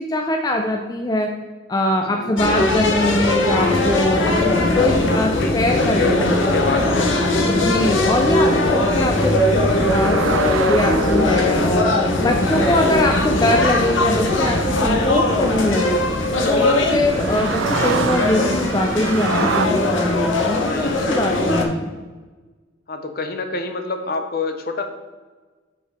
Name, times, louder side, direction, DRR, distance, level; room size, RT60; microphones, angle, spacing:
voice 1, 0.1-1.3 1.7-6.3 7.5-10.2 10.7-12.0 12.2-16.1 16.5-21.9, left 1 dB, 20° left, 3 dB, 0.4 m, -22 dB
sound 1, 2.4-21.6, left 2 dB, 75° left, 0.9 m, -20 dB
voice 2, 5.0-7.7 16.9-17.1 20.5-21.9 22.9-24.8, left 3 dB, 50° left, 6 dB, 0.7 m, -29 dB
sound 2, 8.8-19.7, right 6 dB, 80° right, 0.4 m, -30 dB
5.7 x 4.5 x 4.8 m, 1.3 s
head